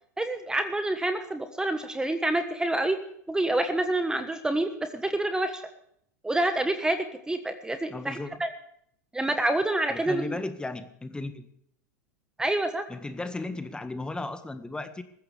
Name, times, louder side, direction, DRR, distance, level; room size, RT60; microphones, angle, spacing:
voice 1, 0.2-3.0 3.3-5.6 6.2-8.5 9.1-10.3 12.4-12.8, right 1 dB, 10° right, 8 dB, 1.4 m, -27 dB
voice 2, 7.9-8.3 9.9-11.5 12.9-15.0, left 2 dB, 10° left, 10 dB, 1.7 m, -35 dB
20.5 x 15.0 x 3.5 m, 0.69 s
hypercardioid pair, 95°, 9 cm